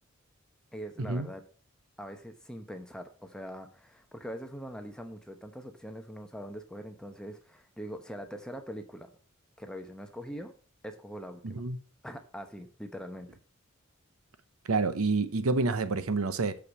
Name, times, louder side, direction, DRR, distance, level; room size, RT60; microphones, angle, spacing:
voice 1, 0.7-1.4 2.0-9.1 9.6-10.5 10.8-11.6 12.0-13.3, equal, 5° left, 0.9 m, -42 dB
voice 2, 11.4-11.8 14.7-16.6, right 3 dB, 90° right, 0.8 m, -28 dB
6.4 x 5.6 x 7.3 m
head